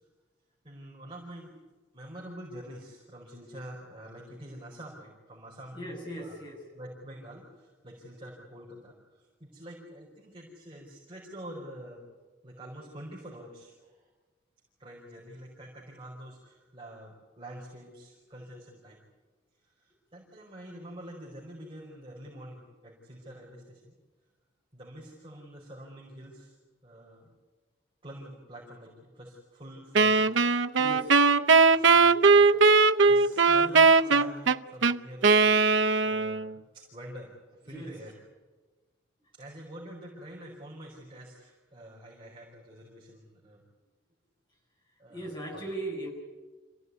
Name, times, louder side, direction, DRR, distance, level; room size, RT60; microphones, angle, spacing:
voice 1, 0.6-1.6 1.9-6.4 6.7-12.0 12.4-14.1 14.8-19.0 19.6-23.9 24.7-26.6 26.8-27.3 28.0-30.2 31.5-32.5 33.0-38.2 39.3-43.6 45.0-45.3 45.5-45.6, right 1 dB, 30° right, -3 dB, 4.8 m, -46 dB
voice 2, 5.7-6.6 30.8-31.1 37.7-37.9 45.1-46.1, right 1 dB, 25° left, -1 dB, 7.5 m, -38 dB
Wind instrument woodwind instrument, 30.0-36.5, right 4 dB, 80° right, 0.7 m, -20 dB
27.0 x 16.5 x 9.7 m, 1.3 s
head